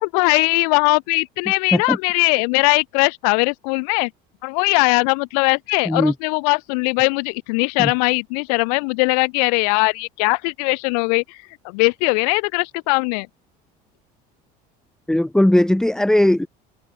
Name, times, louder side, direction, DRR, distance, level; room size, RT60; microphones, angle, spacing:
voice 1, 0.0-4.1 4.4-11.4 11.7-13.3, left 34 dB, 85° left, 2.9 m, -20 dB
voice 2, 15.1-16.5, left 1 dB, 5° left, 1.3 m, -17 dB
cardioid pair, 130°, 19 cm